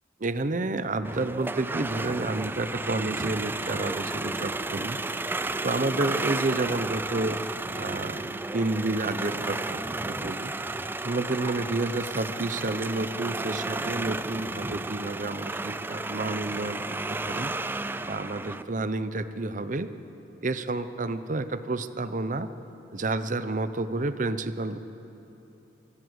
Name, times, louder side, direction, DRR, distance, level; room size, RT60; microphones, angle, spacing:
voice 1, 0.2-5.0 5.6-7.4 7.8-10.5 11.0-16.8 17.1-17.5 18.0-19.9 20.4-22.5 22.9-24.8, right 2 dB, 45° right, 12 dB, 0.7 m, -30 dB
sound 1, 1.0-18.6, right 2 dB, 10° right, 0.4 m, -32 dB
24.5 x 15.5 x 7.9 m, 3.0 s
head